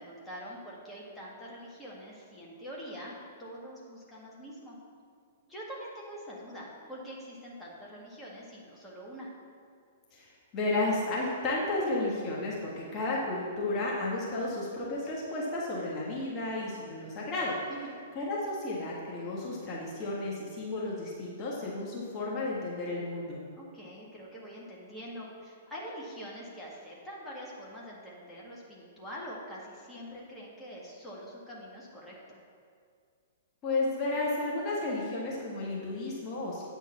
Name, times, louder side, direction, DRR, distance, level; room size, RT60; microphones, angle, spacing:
voice 1, 0.0-3.1 3.4-4.8 5.5-9.3 17.7-18.0 23.6-32.4, equal, 10° left, -5 dB, 1.8 m, -44 dB
voice 2, 10.1-17.6 18.1-23.4 33.6-36.7, left 2 dB, 25° left, -5 dB, 1.6 m, -32 dB
8.9 x 4.5 x 7.0 m, 2.2 s
figure-of-eight pair, 110°, 0 cm